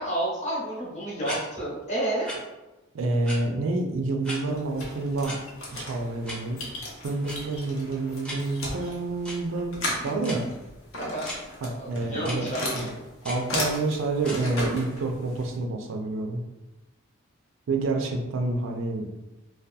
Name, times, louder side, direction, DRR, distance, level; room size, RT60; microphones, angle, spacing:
voice 1, 0.0-2.3 11.0-11.3 11.8-12.9, right 1 dB, 35° left, -5 dB, 0.8 m, -30 dB
sound 1, 1.2-1.4 2.2-2.4 3.2-3.4 4.2-4.4 5.2-5.4 6.2-6.4 7.2-7.3 8.2-8.4 9.2-9.4 10.2-10.4 11.2-11.4 12.2-12.4 13.2-13.4 14.2-14.4, equal, 5° left, 0.5 m, -35 dB
voice 2, 2.9-5.3 5.7-6.6 7.0-9.8 10.0-10.5 11.6-12.5 12.7-12.9 13.2-16.4 17.7-19.1, right 2 dB, 65° right, 3 dB, 0.3 m, -28 dB
sound 2, 4.5-15.6, left 1 dB, 70° left, 0.7 m, -36 dB
2.6 x 2.2 x 2.2 m, 1.0 s
head